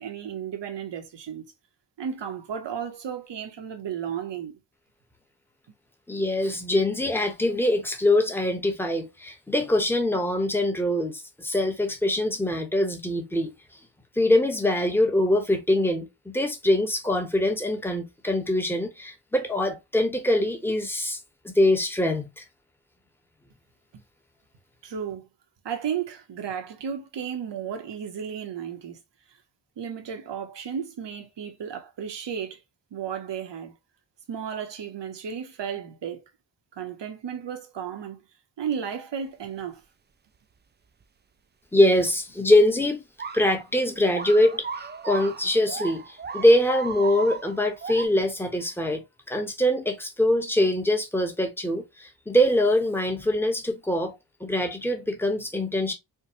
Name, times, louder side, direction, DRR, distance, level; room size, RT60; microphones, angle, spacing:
voice 1, 0.0-1.4 2.0-4.6 23.9-24.0 24.8-25.2 25.6-29.0 29.8-32.6 32.9-33.7 34.3-36.2 36.8-38.2 38.6-39.8, right 8 dB, 80° right, 1.0 m, -34 dB
voice 2, 6.1-13.5 14.2-21.2 21.4-22.4 41.7-43.0 43.3-44.6 45.0-49.0 49.3-54.1 54.4-55.9, left 1 dB, 5° left, 0.9 m, -23 dB
sound 1, 43.2-43.6 44.0-48.1, right 5 dB, 25° right, 0.4 m, -36 dB
4.7 x 2.2 x 2.7 m
wide cardioid pair, 85°, 42 cm